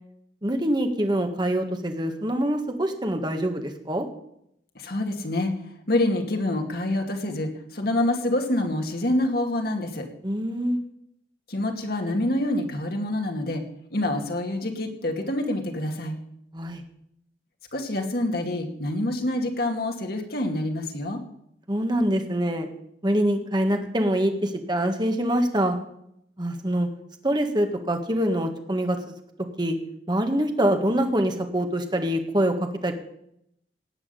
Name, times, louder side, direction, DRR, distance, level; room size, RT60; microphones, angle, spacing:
voice 1, 0.4-4.1 10.2-10.8 16.5-16.8 21.7-22.7 23.0-25.8 26.4-26.9 27.2-29.2 29.6-29.8 30.1-32.9, right 1 dB, 25° right, 5 dB, 1.7 m, -25 dB
voice 2, 4.7-5.5 5.9-10.1 11.5-13.6 13.9-16.2 17.7-21.2, left 1 dB, 55° left, 3 dB, 2.5 m, -26 dB
18.0 x 6.3 x 9.1 m, 0.74 s
head